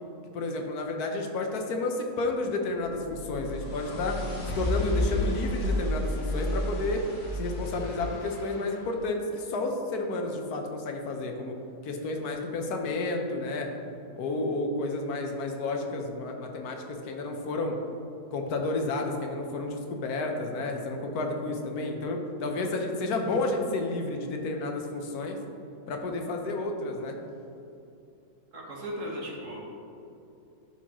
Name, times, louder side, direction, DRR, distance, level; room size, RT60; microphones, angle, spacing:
voice 1, 0.3-4.2 4.6-7.0 7.4-11.5 11.8-13.7 14.2-17.8 18.3-25.4 25.9-27.2, left 2 dB, 80° left, 3 dB, 1.3 m, -31 dB
sound 1, 2.8-8.9, left 1 dB, 40° left, 0.9 m, -31 dB
voice 2, 28.5-29.6, equal, 55° right, -3 dB, 1.7 m, -36 dB
11.5 x 4.3 x 3.0 m, 2.8 s
omnidirectional pair, 1.6 m